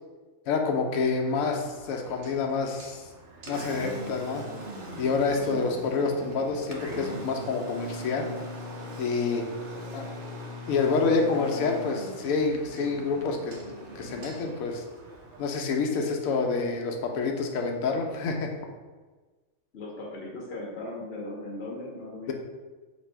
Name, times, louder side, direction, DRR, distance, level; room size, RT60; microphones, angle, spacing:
voice 1, 0.5-3.0 3.5-4.4 5.0-8.3 9.0-9.4 9.9-10.1 10.7-13.5 14.0-14.8 15.4-18.5, left 4 dB, 85° left, 2 dB, 1.0 m, -27 dB
Engine, 1.4-15.4, equal, 65° right, 0.9 m, -41 dB
voice 2, 19.7-22.3, left 2 dB, 55° left, -2 dB, 0.9 m, -38 dB
2.9 x 2.6 x 4.3 m, 1.3 s
omnidirectional pair, 1.4 m